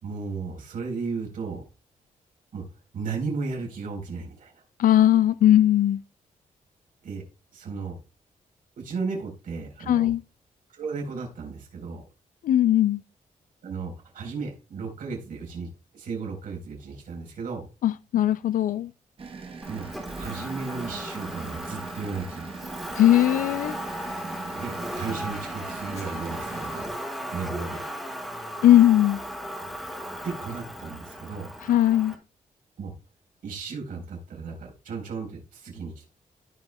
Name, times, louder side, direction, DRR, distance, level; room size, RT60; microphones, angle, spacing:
voice 1, 0.0-1.6 2.5-2.6 2.9-4.6 7.0-7.2 7.5-8.0 8.8-10.1 10.7-12.0 13.6-15.7 15.9-17.7 19.7-19.9 20.1-22.5 24.5-27.8 30.2-31.5 32.8-32.9 33.4-36.0, right 4 dB, 85° right, 4.0 m, -35 dB
voice 2, 4.8-6.0 9.9-10.2 12.4-13.0 17.8-18.9 23.0-23.7 28.6-29.2 31.7-32.1, left 12 dB, 80° left, 0.4 m, -19 dB
sound 1, 19.2-26.9, right 4 dB, 40° right, 1.1 m, -41 dB
Motor vehicle (road), 19.6-32.1, equal, ahead, 2.9 m, -36 dB
Shatter, 25.9-27.3, left 3 dB, 50° left, 2.8 m, -51 dB
16.0 x 5.4 x 2.3 m
wide cardioid pair, 165°, 14 cm